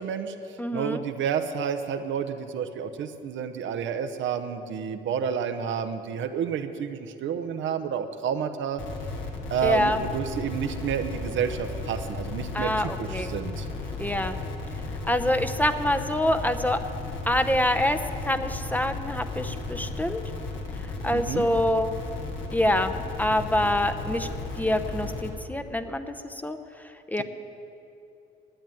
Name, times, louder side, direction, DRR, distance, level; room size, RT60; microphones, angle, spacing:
voice 1, 0.0-8.8 9.5-13.7 21.1-21.5, right 7 dB, 75° right, 8 dB, 0.8 m, -30 dB
voice 2, 0.6-1.0 9.6-10.0 12.5-13.3 14.0-14.4 15.1-16.8 17.3-18.0 18.2-20.2 21.0-21.9 22.5-24.3 24.6-26.6 27.1-27.2, left 1 dB, 10° left, 8 dB, 0.7 m, -25 dB
sound 1, 8.8-25.3, left 3 dB, 75° left, 1.8 m, -35 dB
11.0 x 9.0 x 9.1 m, 2.7 s
cardioid pair, 90°, 20 cm